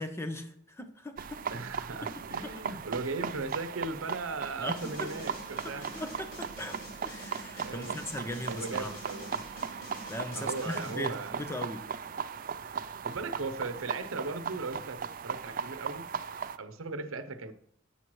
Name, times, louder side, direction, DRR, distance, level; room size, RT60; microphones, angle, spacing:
voice 1, 0.0-1.4 2.4-2.5 4.6-5.1 5.9-6.8 7.0-8.9 10.1-11.8, left 1 dB, 10° left, 0.8 m, -38 dB
sound 1, 1.2-16.6, right 7 dB, 40° right, 0.4 m, -38 dB
voice 2, 1.5-6.0 7.6-8.0 8.5-9.4 10.3-11.5 13.0-16.1 16.6-17.5, right 3 dB, 85° right, 0.8 m, -38 dB
sound 2, 4.7-11.0, equal, 70° left, 3.5 m, -47 dB
12.0 x 8.0 x 3.1 m
head